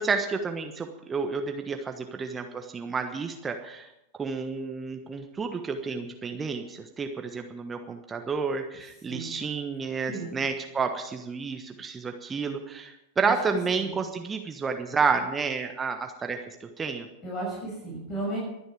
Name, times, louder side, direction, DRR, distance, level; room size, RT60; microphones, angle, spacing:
voice 1, 0.0-3.9 4.2-17.1, right 5 dB, 15° right, 5 dB, 1.3 m, -30 dB
voice 2, 17.2-18.4, right 2 dB, 30° left, -3 dB, 6.4 m, -34 dB
24.0 x 9.8 x 4.9 m, 0.88 s
figure-of-eight pair, 90°, 0 cm